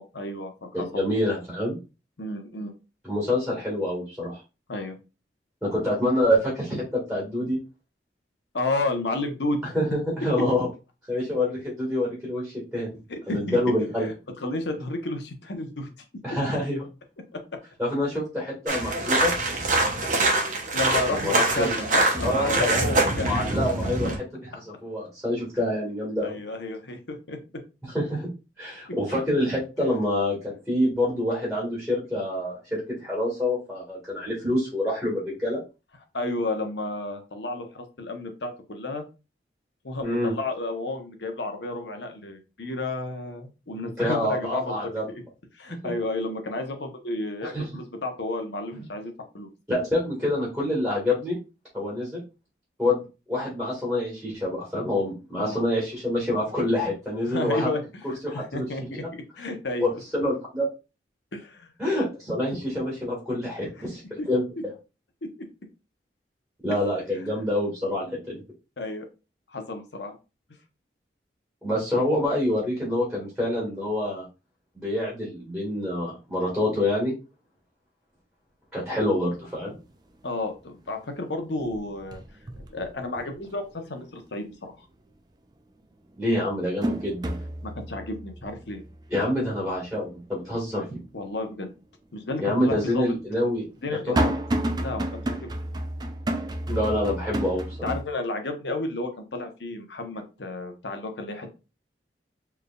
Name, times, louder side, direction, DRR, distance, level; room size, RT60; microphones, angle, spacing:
voice 1, 0.0-1.0 2.2-2.7 4.7-5.0 8.5-9.6 13.1-13.6 14.0-14.1 14.4-15.9 17.3-17.4 20.7-23.3 26.2-27.4 36.1-39.0 39.8-44.9 45.5-49.5 55.4-55.6 57.3-58.0 58.3-59.8 61.3-61.7 64.2-64.3 65.2-65.3 67.1-67.4 68.0-68.2 68.8-69.1 69.5-70.2 80.2-82.2 82.7-84.7 87.6-88.8 91.1-91.7 92.1-93.1 93.8-94.3 94.8-95.5 97.8-101.5, left 2 dB, 75° left, 5 dB, 1.0 m, -32 dB
voice 2, 0.7-1.8 3.0-4.4 5.6-7.6 9.6-10.7 11.1-12.9 13.3-14.1 16.2-16.9 17.8-19.3 21.1-21.7 22.2-26.4 27.8-28.3 28.6-35.6 40.0-40.3 44.0-45.0 45.7-45.8 47.4-47.7 49.7-51.4 51.7-52.2 52.8-53.0 53.3-57.7 58.2-59.0 59.8-60.7 61.8-64.0 64.3-64.4 66.6-68.4 71.6-74.2 74.7-77.1 78.7-79.8 86.2-87.4 89.1-91.0 92.4-94.2 96.7-97.9, left 1 dB, ahead, -4 dB, 1.8 m, -27 dB
sound 1, 18.7-24.2, right 2 dB, 45° right, 1.0 m, -24 dB
sound 2, 78.8-78.9 79.3-79.9 80.2-81.0 81.3-83.6 84.0-84.1 85.5-85.6 86.1-91.3 91.7-91.8 92.7-98.0, right 1 dB, 20° right, 0.4 m, -31 dB
4.5 x 3.3 x 2.4 m, 0.30 s
head